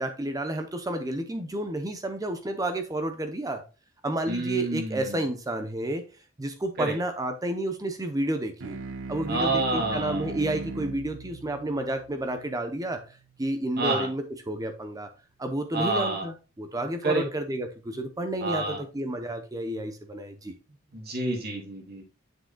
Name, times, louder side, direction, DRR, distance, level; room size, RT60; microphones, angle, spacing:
voice 1, 0.0-3.6 4.0-6.0 6.4-8.8 9.1-13.0 13.4-15.1 15.4-20.6, right 1 dB, 20° right, 0.7 m, -31 dB
voice 2, 4.3-5.2 6.8-6.9 9.3-10.4 13.8-14.1 15.7-16.3 17.0-17.3 18.4-18.8 20.9-22.0, right 2 dB, 55° right, 2.3 m, -28 dB
sound 1, 8.6-13.5, right 3 dB, 85° right, 1.0 m, -39 dB
7.5 x 6.4 x 2.3 m
head